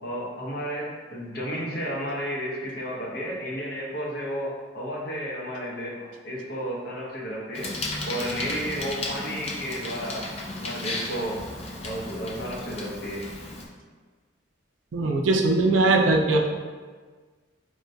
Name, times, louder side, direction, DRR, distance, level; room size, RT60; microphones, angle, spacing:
voice 1, 0.0-7.7 8.1-10.3 10.6-11.4 11.8-13.2, equal, 60° left, -4 dB, 0.8 m, -32 dB
Bicycle, 7.5-13.6, left 2 dB, 35° left, 0.4 m, -34 dB
voice 2, 14.9-16.5, right 2 dB, 90° right, 2 dB, 0.4 m, -20 dB
4.7 x 2.2 x 2.6 m, 1.5 s
head